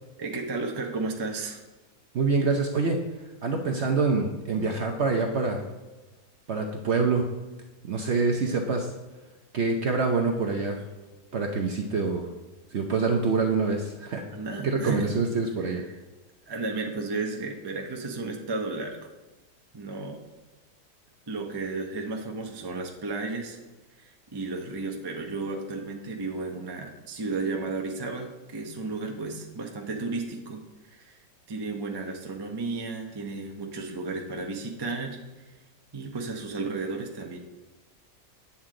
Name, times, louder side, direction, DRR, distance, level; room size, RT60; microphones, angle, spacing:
voice 1, 0.2-1.6 14.3-15.2 15.6-16.0 16.5-19.0 19.7-20.2 21.3-23.6 24.3-30.6 30.9-31.2 31.5-35.2 35.9-37.4, right 3 dB, 35° right, 1 dB, 0.4 m, -33 dB
voice 2, 2.1-3.0 3.4-5.6 6.5-7.3 7.8-8.9 9.5-10.8 11.3-12.3 12.7-14.2 14.6-15.8, right 4 dB, 55° right, 2 dB, 0.7 m, -26 dB
8.9 x 7.1 x 3.8 m, 1.1 s
omnidirectional pair, 1.9 m